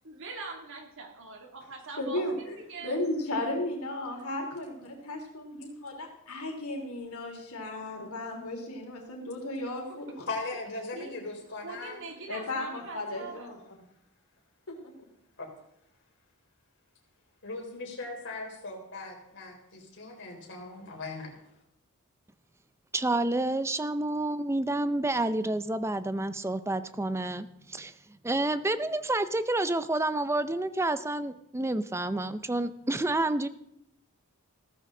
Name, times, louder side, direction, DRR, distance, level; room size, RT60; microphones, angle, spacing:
voice 1, 0.0-3.0 9.9-10.2 10.9-13.6, right 3 dB, 60° right, 3 dB, 2.5 m, -43 dB
voice 2, 2.0-10.2 12.3-13.6 14.7-14.8, left 1 dB, 75° left, 1 dB, 3.3 m, -35 dB
voice 3, 10.3-12.0 15.4-15.5 17.4-21.4, left 3 dB, 55° left, 1 dB, 3.9 m, -39 dB
voice 4, 22.9-27.9 28.2-33.5, right 2 dB, 10° right, 13 dB, 0.6 m, -29 dB
15.5 x 14.0 x 3.8 m, 0.77 s
head